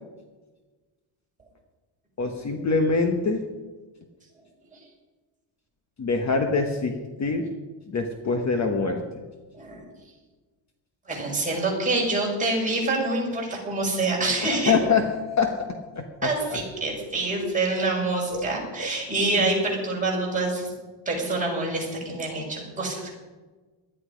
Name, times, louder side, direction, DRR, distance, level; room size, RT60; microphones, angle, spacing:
voice 1, 2.2-3.4 6.0-7.5 7.9-9.0 14.4-15.1 15.4-15.5 16.0-16.6 18.3-18.5 18.8-18.9 19.4-19.5, left 4 dB, 35° left, 4 dB, 1.2 m, -25 dB
voice 2, 11.1-14.7 16.2-20.7 21.1-23.1, right 2 dB, 15° right, -3 dB, 5.3 m, -26 dB
19.0 x 12.5 x 5.2 m, 1.3 s
cardioid pair, 175°, 49 cm